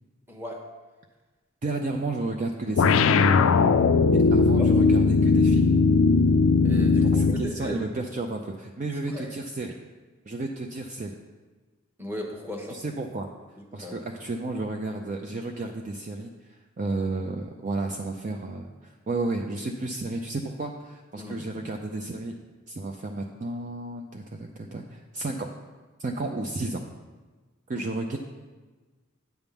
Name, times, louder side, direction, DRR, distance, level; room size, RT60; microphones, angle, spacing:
voice 1, 0.3-0.6 4.6-4.7 6.6-7.8 9.1-9.2 12.0-12.8 13.7-14.0 21.2-21.3, equal, 10° right, 0 dB, 1.0 m, -36 dB
voice 2, 1.6-3.0 4.1-5.7 7.0-9.7 10.3-11.1 12.7-13.3 13.7-22.3 22.7-25.5 26.0-26.8 27.7-28.2, right 2 dB, 35° right, 3 dB, 0.4 m, -32 dB
sound 1, 2.8-7.5, left 4 dB, 65° left, 0.4 m, -19 dB
9.0 x 3.6 x 7.0 m, 1.3 s
head